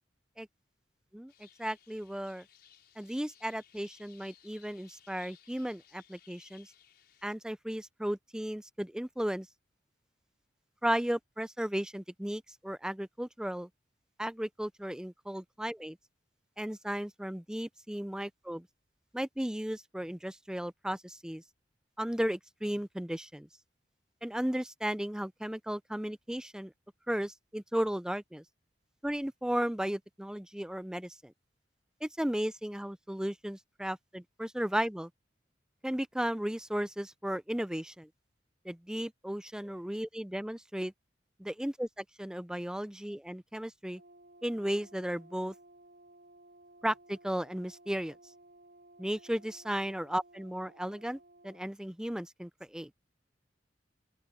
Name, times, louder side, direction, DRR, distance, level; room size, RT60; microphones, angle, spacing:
voice 1, 1.1-2.5 3.0-6.7 7.2-9.5 10.8-13.7 14.2-16.0 16.6-18.7 19.1-21.4 22.0-23.5 24.2-26.7 27.1-28.4 29.0-31.3 32.0-35.1 35.8-38.1 38.6-40.9 41.4-44.0 44.4-45.5 46.8-48.2 49.0-52.9, equal, 5° right, 0.5 m, -35 dB
sound 1, 1.3-7.3, left 10 dB, 60° left, 5.7 m, -61 dB
Brass instrument, 43.9-51.7, right 2 dB, 60° right, 7.3 m, -58 dB
open air
head